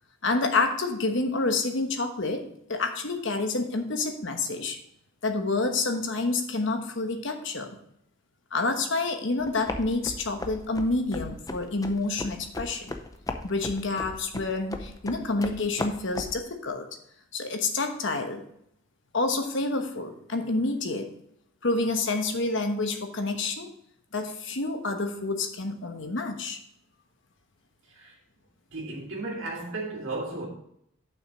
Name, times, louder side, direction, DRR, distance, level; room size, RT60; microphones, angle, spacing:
voice 1, 0.2-4.8 5.2-7.7 8.5-12.9 13.4-16.9 17.3-18.4 19.1-21.1 21.6-23.7 24.1-26.6, left 3 dB, 65° left, 1.1 m, -28 dB
sound 1, 9.4-16.4, left 2 dB, 20° left, 0.6 m, -37 dB
voice 2, 28.7-30.5, right 2 dB, 70° right, 2.3 m, -34 dB
7.2 x 5.8 x 4.8 m
head